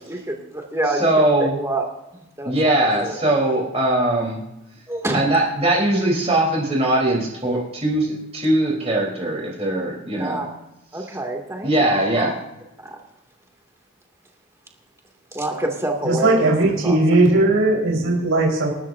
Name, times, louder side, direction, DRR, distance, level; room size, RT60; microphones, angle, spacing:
voice 1, 0.0-1.1 1.4-1.8 2.1-2.5 2.9-3.2 4.9-5.2 10.1-10.5 10.9-11.7 15.3-17.0, right 1 dB, 15° right, 1 dB, 2.7 m, -27 dB
voice 2, 1.0-1.6 2.5-4.4 5.1-10.4 11.6-12.3, right 1 dB, 30° right, -3 dB, 4.2 m, -20 dB
voice 3, 16.0-18.7, right 2 dB, 85° right, -2 dB, 4.8 m, -18 dB
28.5 x 13.0 x 2.8 m, 0.93 s
head